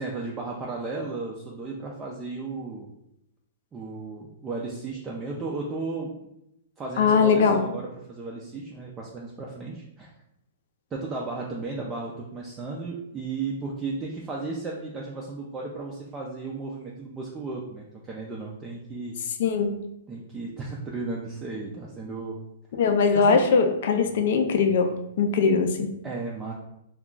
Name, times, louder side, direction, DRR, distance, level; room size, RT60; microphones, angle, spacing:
voice 1, 0.0-2.9 3.7-6.1 6.8-10.1 10.9-19.1 20.1-22.4 23.1-23.4 26.0-26.5, right 3 dB, 15° right, -3 dB, 0.4 m, -34 dB
voice 2, 7.0-7.6 19.4-19.7 22.8-24.9 25.2-25.9, left 5 dB, 60° left, 6 dB, 0.4 m, -21 dB
2.3 x 2.3 x 3.7 m, 0.83 s
hypercardioid pair, 150°, 0 cm